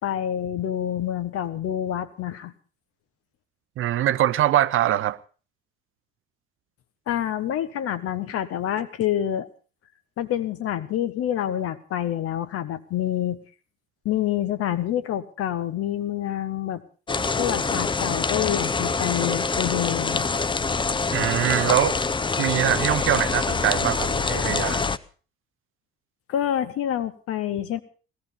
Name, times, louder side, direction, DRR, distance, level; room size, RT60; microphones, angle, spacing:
voice 1, 0.0-2.5 7.1-9.5 10.2-13.4 14.0-16.8 17.4-20.3 26.3-27.8, left 11 dB, 50° left, 1.4 m, -27 dB
voice 2, 3.8-5.2 21.1-22.0 22.4-24.8, right 12 dB, 45° right, 0.7 m, -23 dB
sound 1, 17.1-25.0, left 4 dB, 15° left, 0.7 m, -25 dB
17.0 x 14.0 x 5.3 m
figure-of-eight pair, 50°, 30 cm